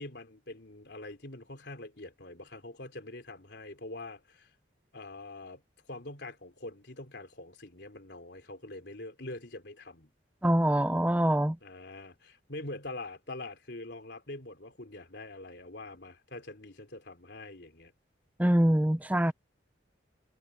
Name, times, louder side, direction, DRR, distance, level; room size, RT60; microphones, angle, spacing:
voice 1, 0.0-4.5 4.9-5.6 5.9-10.1 11.6-17.9, left 2 dB, 65° left, 3.7 m, -44 dB
voice 2, 10.4-11.6 18.4-19.3, right 1 dB, 10° right, 0.5 m, -24 dB
head